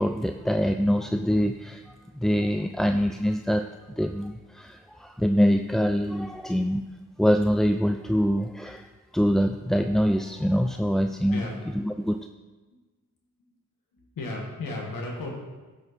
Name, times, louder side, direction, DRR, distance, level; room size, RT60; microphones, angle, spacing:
voice 1, 0.0-6.8 7.2-11.5 11.8-12.3, equal, ahead, 7 dB, 0.3 m, -25 dB
voice 2, 13.9-15.3, left 2 dB, 70° left, 0 dB, 2.0 m, -34 dB
10.5 x 6.2 x 4.3 m, 1.3 s
supercardioid pair, 50°, 36 cm